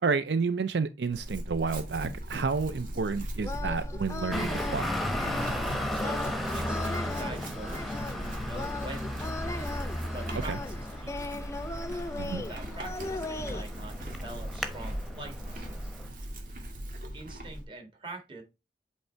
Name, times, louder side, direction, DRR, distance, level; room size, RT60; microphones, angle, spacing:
voice 1, 0.0-4.9 10.5-10.6 12.1-12.4, right 4 dB, 75° right, 0.5 m, -30 dB
Chewing mastication / Livestock farm animals working animals, 1.1-17.6, right 1 dB, 50° right, 1.8 m, -39 dB
sound 1, 3.4-13.6, left 2 dB, 15° left, 0.4 m, -39 dB
Traffic noise roadway noise, 4.3-16.1, left 1 dB, ahead, 0.9 m, -35 dB
voice 2, 6.0-9.7 10.1-11.2 12.3-15.9 17.1-18.4, right 2 dB, 30° right, 1.9 m, -44 dB
8.1 x 3.3 x 4.4 m
head